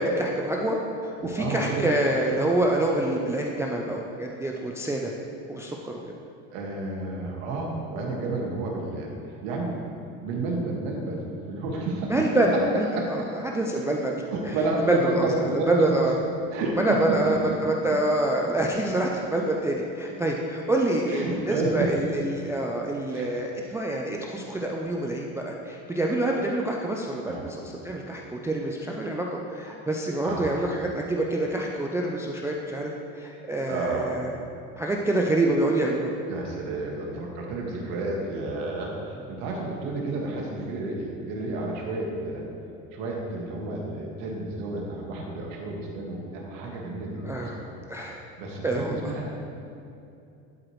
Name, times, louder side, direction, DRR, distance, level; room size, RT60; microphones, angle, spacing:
voice 1, 0.0-5.1 5.5-6.0 12.1-14.2 14.8-16.1 16.8-34.3 34.8-36.1 47.2-48.2 48.6-49.1, right 1 dB, 10° right, -1 dB, 0.3 m, -26 dB
voice 2, 1.2-1.9 6.5-9.1 9.4-9.7 10.2-12.6 12.9-13.3 14.3-15.9 16.5-17.2 17.5-17.6 21.1-21.9 23.1-23.4 27.3-27.5 30.2-30.7 33.7-34.3 36.3-42.4 42.9-47.7 48.4-49.3, right 2 dB, 75° right, -1 dB, 1.7 m, -31 dB
11.5 x 4.8 x 3.1 m, 2.7 s
supercardioid pair, 110°, 39 cm